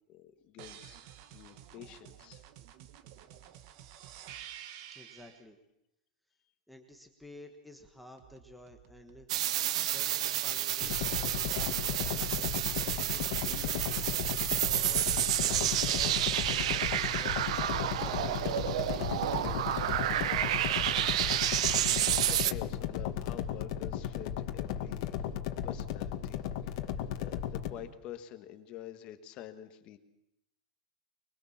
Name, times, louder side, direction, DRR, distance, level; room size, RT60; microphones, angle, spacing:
voice 1, 0.1-1.0 1.3-2.4 19.8-20.0 21.2-25.1 25.6-30.0, left 11 dB, 25° left, 9 dB, 1.6 m, -48 dB
sound 1, 0.6-5.4 8.2-9.3, right 10 dB, 35° right, 1.4 m, -50 dB
voice 2, 4.9-5.6 6.7-9.3 9.8-12.0 12.4-14.0 14.5-19.1, left 1 dB, ahead, 3 dB, 1.3 m, -52 dB
sound 2, 9.3-22.5, right 12 dB, 55° right, 0.9 m, -30 dB
sound 3, 10.8-27.7, left 10 dB, 40° left, 2.0 m, -35 dB
23.0 x 22.0 x 7.3 m, 0.83 s
supercardioid pair, 180°, 4 cm